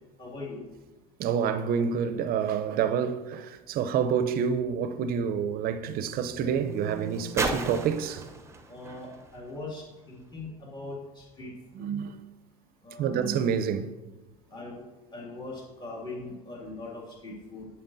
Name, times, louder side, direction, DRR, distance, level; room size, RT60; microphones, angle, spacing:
voice 1, 0.2-0.6 8.7-11.5 11.8-11.9 12.8-13.2 14.5-14.9 15.1-17.7, left 2 dB, 20° left, 2.2 m, -41 dB
voice 2, 1.2-8.3 11.7-12.2 13.0-13.9, right 7 dB, 50° right, 0.6 m, -28 dB
sound 1, 5.4-10.3 11.2-11.3, right 3 dB, 15° right, 0.8 m, -38 dB
8.8 x 7.6 x 2.6 m
supercardioid pair, 100°, 20 cm